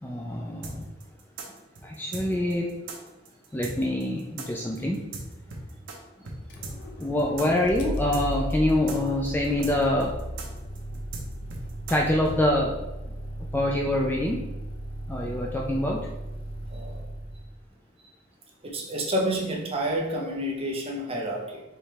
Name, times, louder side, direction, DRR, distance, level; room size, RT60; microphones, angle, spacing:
voice 1, 0.0-0.9 1.8-2.7 3.5-5.0 7.0-10.1 11.9-12.7 13.5-14.5 15.1-16.0, left 1 dB, 10° left, -1 dB, 0.3 m, -25 dB
sound 1, 0.6-6.0 6.2-6.4 6.6-12.4, right 3 dB, 65° right, 0.9 m, -38 dB
Motor vehicle (road), 6.4-17.6, equal, 60° left, 0.7 m, -36 dB
voice 2, 16.7-17.1 18.6-21.6, right 1 dB, 30° right, -1 dB, 0.8 m, -29 dB
4.6 x 3.2 x 3.4 m, 1.0 s
head